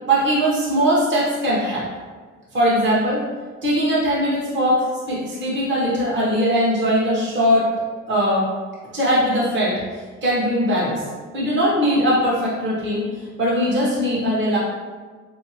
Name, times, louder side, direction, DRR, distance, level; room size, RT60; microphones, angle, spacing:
voice 1, 0.1-1.9 2.5-3.2 3.6-7.7 8.1-8.5 8.9-11.0 11.3-14.6, equal, 40° right, -7 dB, 1.0 m, -20 dB
3.6 x 2.7 x 2.8 m, 1.5 s
cardioid pair, 90°, 30 cm